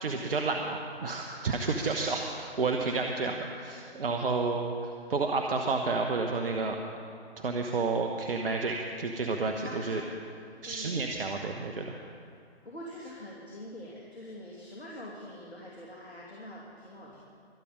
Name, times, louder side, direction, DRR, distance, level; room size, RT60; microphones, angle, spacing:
voice 1, 0.0-6.8 7.4-10.0 10.6-11.9, right 3 dB, 60° right, 3 dB, 1.2 m, -30 dB
voice 2, 9.6-10.3 10.6-11.0 12.6-17.2, left 1 dB, 75° left, -4 dB, 2.9 m, -44 dB
24.5 x 8.6 x 5.2 m, 2.5 s
figure-of-eight pair, 135°, 32 cm